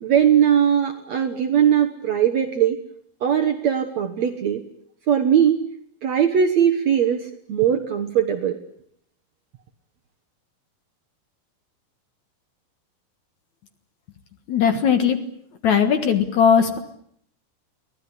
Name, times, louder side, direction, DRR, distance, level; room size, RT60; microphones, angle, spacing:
voice 1, 0.0-2.8 3.2-4.6 5.1-5.6 6.0-8.6, right 9 dB, 65° right, 6 dB, 1.9 m, -20 dB
voice 2, 14.5-15.2 15.6-16.8, left 7 dB, 55° left, 8 dB, 2.4 m, -18 dB
24.0 x 18.0 x 9.9 m, 0.69 s
omnidirectional pair, 4.5 m